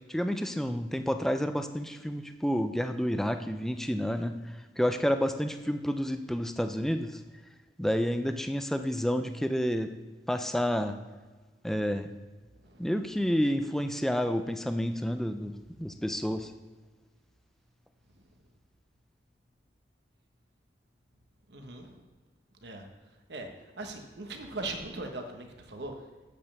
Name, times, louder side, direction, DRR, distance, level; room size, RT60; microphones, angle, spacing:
voice 1, 0.1-4.3 4.8-7.2 7.8-9.9 10.3-11.0 11.6-12.1 12.8-16.5, equal, ahead, 8 dB, 0.4 m, -29 dB
voice 2, 12.6-12.9 21.5-22.0 22.6-22.9 23.3-26.0, right 2 dB, 65° right, 4 dB, 1.1 m, -40 dB
8.0 x 5.4 x 6.9 m, 1.3 s
head